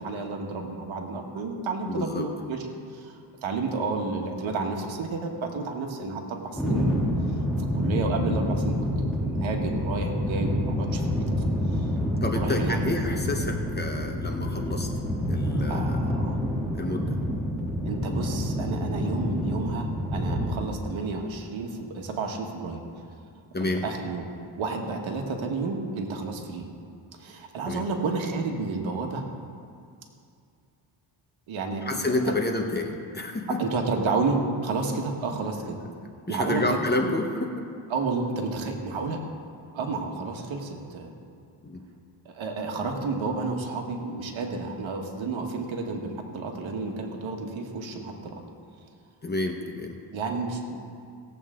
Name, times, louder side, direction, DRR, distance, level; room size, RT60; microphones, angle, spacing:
voice 1, 0.0-2.6 2.9-3.1 3.4-7.1 7.6-8.8 9.0-11.4 11.7-11.9 12.2-13.1 15.7-16.4 17.8-22.8 23.6-24.2 24.6-26.7 27.1-29.3 31.5-31.8 33.6-35.8 36.3-36.8 37.9-39.2 39.7-41.1 42.2-48.4 50.1-50.8, right 3 dB, 75° right, 2 dB, 1.6 m, -31 dB
voice 2, 1.8-2.3 12.2-14.9 15.3-16.0 16.8-17.2 23.5-23.8 27.6-27.9 31.8-33.6 36.3-37.5 41.6-41.8 49.2-50.0, left 2 dB, 20° left, 3 dB, 1.1 m, -29 dB
Dom Luís I Bridge, 6.6-20.5, equal, ahead, 2.6 m, -28 dB
17.5 x 8.0 x 3.8 m, 2.4 s
cardioid pair, 105°, 47 cm